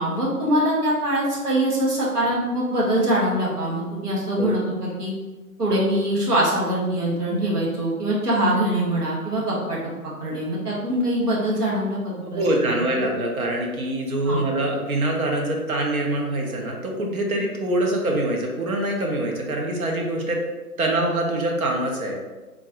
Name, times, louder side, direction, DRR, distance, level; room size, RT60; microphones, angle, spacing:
voice 1, 0.0-5.1 5.6-9.9 10.2-12.8 14.2-14.4, right 1 dB, 80° right, -5 dB, 1.4 m, -23 dB
voice 2, 12.2-20.4 20.8-22.2, right 1 dB, 65° right, 0 dB, 1.0 m, -24 dB
3.7 x 2.5 x 3.0 m, 1.2 s
figure-of-eight pair, 140°, 46 cm